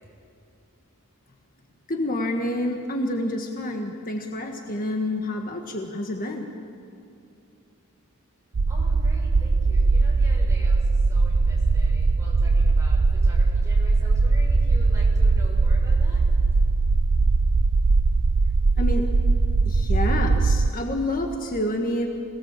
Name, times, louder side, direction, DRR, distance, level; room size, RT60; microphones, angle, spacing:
voice 1, 1.9-6.5 18.8-19.0 19.6-22.1, left 1 dB, 40° left, 2 dB, 1.6 m, -28 dB
sound 1, 8.5-20.7, right 3 dB, 85° right, 0.7 m, -20 dB
voice 2, 8.7-16.2 16.5-16.6, right 1 dB, 15° right, -4 dB, 6.6 m, -45 dB
27.0 x 19.0 x 7.6 m, 2.6 s
head